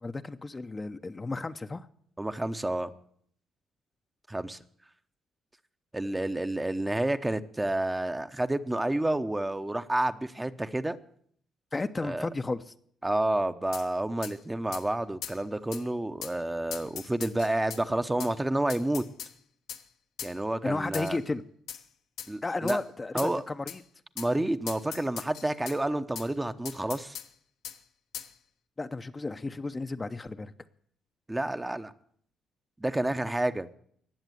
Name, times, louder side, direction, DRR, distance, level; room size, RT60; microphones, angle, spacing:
voice 1, 0.0-1.9 11.7-12.7 20.6-21.4 22.4-23.8 28.8-30.5, left 3 dB, 25° left, 8 dB, 0.7 m, -33 dB
voice 2, 2.2-2.9 4.3-4.6 5.9-11.0 12.0-12.3 13.0-19.0 20.2-21.2 22.3-22.8 23.1-23.4 24.2-27.2 31.3-31.9 32.8-33.7, right 1 dB, 10° right, 10 dB, 0.8 m, -29 dB
sound 1, 13.7-13.9 14.2-14.3 14.7-14.8 15.2-15.4 15.7-15.8 16.2-16.4 16.7-17.8 18.2-18.3 18.7-19.3 19.7-19.8 20.2-20.3 20.9-21.2 21.7-21.8 22.2-22.3 22.7-22.8 23.2-23.3 23.7-23.8 24.2-24.3 24.7-25.8 26.1-26.3 26.6-27.3 27.6-27.8 28.1-28.3, left 9 dB, 80° left, 1.2 m, -40 dB
19.0 x 7.3 x 9.3 m, 0.64 s
cardioid pair, 90°, 0 cm